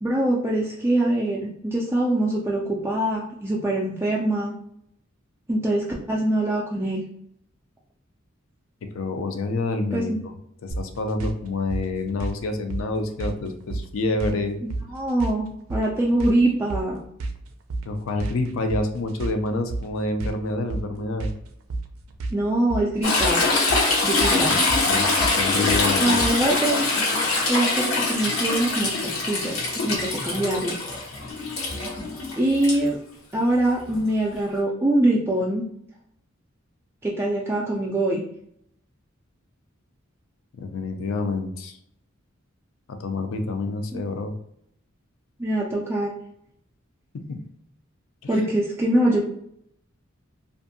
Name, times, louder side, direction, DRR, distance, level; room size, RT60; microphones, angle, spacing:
voice 1, 0.0-4.5 5.5-7.0 9.9-10.2 14.6-17.0 22.3-23.4 24.0-24.6 26.0-26.9 27.5-29.6 29.8-30.8 32.4-33.0 33.3-35.7 37.0-38.2 43.9-44.0 45.4-46.1 48.3-49.2, right 1 dB, 10° right, -4 dB, 0.3 m, -23 dB
voice 2, 8.9-10.1 10.6-14.6 17.9-21.3 24.5-25.1 25.3-26.2 40.6-41.8 42.9-44.3 47.1-47.4 48.2-48.5, left 2 dB, 70° left, 6 dB, 0.4 m, -28 dB
sound 1, 10.7-26.6, right 2 dB, 90° right, 0.4 m, -32 dB
Toilet flush / Trickle dribble, 23.0-32.8 34.6-34.7, left 3 dB, 90° left, 0.9 m, -23 dB
2.6 x 2.4 x 2.5 m, 0.72 s
head